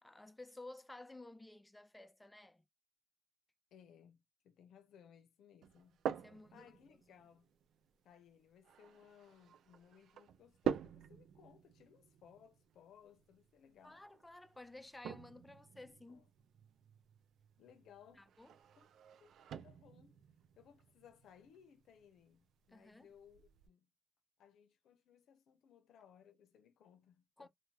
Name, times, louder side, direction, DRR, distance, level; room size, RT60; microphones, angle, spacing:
voice 1, 0.0-2.6 6.1-6.7 13.8-16.3 18.1-18.5 22.7-23.1 27.4-27.5, left 2 dB, 15° left, 0.5 m, -54 dB
voice 2, 3.7-7.5 8.0-14.0 15.8-16.2 17.6-18.3 18.8-18.9 19.2-19.3 19.6-20.2 20.6-23.9 24.4-27.5, left 8 dB, 90° left, 0.6 m, -63 dB
sound 1, 5.6-23.7, right 9 dB, 85° right, 0.3 m, -48 dB
3.1 x 2.3 x 2.2 m
cardioid pair, 75°, 0 cm